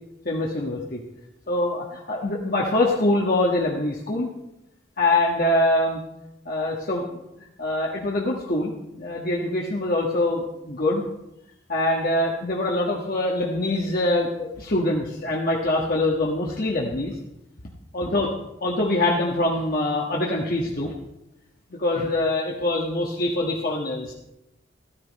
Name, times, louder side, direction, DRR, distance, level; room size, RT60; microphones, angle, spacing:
voice 1, 0.2-1.0 1.5-4.3 5.0-6.0 6.4-7.0 7.4-11.0 11.7-17.2 17.9-18.3 18.6-20.9 21.7-24.1, left 1 dB, 55° left, -3 dB, 1.6 m, -24 dB
13.5 x 13.5 x 4.2 m, 0.86 s
head